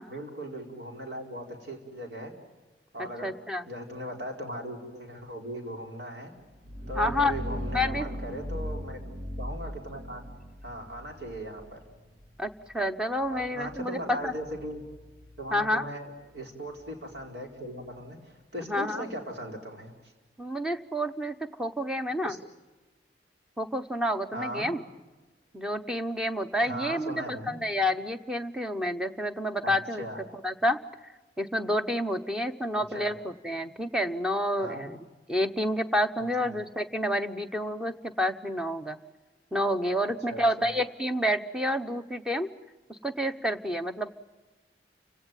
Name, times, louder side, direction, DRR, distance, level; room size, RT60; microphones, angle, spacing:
voice 1, 0.1-2.3 2.9-3.3 3.7-6.3 6.9-9.0 9.4-10.2 10.6-11.8 13.3-14.8 15.4-19.9 22.2-22.4 24.3-24.7 26.6-27.6 29.6-29.7 30.0-30.2 32.7-33.1 34.6-34.9 36.2-36.5 40.3-40.7, equal, 80° right, 1 dB, 4.7 m, -38 dB
voice 2, 3.2-3.6 6.9-7.3 7.7-8.1 12.4-14.3 15.5-15.8 18.6-19.0 20.4-22.4 23.6-24.8 25.5-30.0 30.4-30.8 31.4-35.0 35.3-39.0 39.5-42.5 42.9-44.1, equal, 5° right, 7 dB, 0.9 m, -29 dB
sound 1, 6.4-18.0, equal, 50° right, 2.3 m, -40 dB
29.5 x 17.5 x 9.2 m, 1.2 s
head